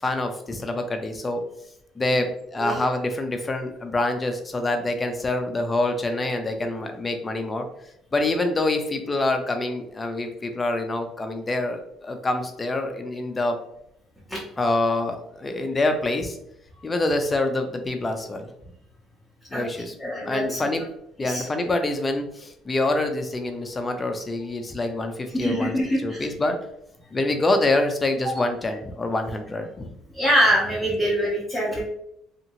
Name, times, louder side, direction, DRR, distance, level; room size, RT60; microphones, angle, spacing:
voice 1, 0.0-1.4 1.9-7.7 8.1-13.6 14.6-16.4 16.8-18.5 19.5-20.9 21.2-26.6 27.1-29.9, left 2 dB, 20° left, 5 dB, 0.4 m, -26 dB
voice 2, 20.0-20.6 21.2-21.5 25.3-26.3 30.1-31.8, equal, ahead, -8 dB, 0.8 m, -24 dB
2.8 x 2.7 x 2.7 m, 0.75 s
cardioid pair, 120°, 0 cm